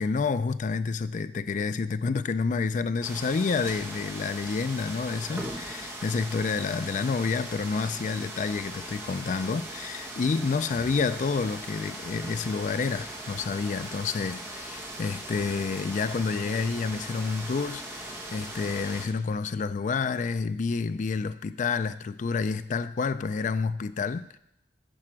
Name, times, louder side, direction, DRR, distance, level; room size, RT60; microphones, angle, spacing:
voice 1, 0.0-17.8 18.3-24.3, left 4 dB, 40° left, 0.3 m, -29 dB
sound 1, 3.0-19.1, right 1 dB, 10° right, 1.0 m, -39 dB
7.6 x 4.9 x 6.2 m
head